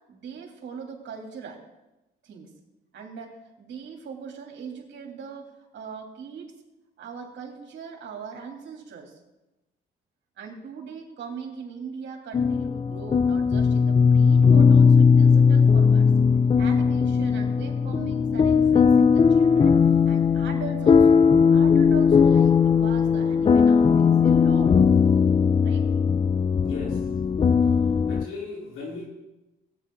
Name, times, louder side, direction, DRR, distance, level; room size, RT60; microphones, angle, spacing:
voice 1, 0.1-1.6 2.2-2.5 2.9-6.5 7.0-9.2 10.4-16.1 16.6-19.8 20.1-21.2 21.5-24.7 25.6-25.8, right 6 dB, 65° right, 1 dB, 3.1 m, -40 dB
sound 1, 12.3-28.2, left 6 dB, 25° left, 0.4 m, -18 dB
voice 2, 26.6-27.0 28.1-29.0, left 3 dB, 90° left, -3 dB, 4.1 m, -36 dB
17.0 x 9.3 x 3.9 m, 0.98 s
cardioid pair, 90°, 20 cm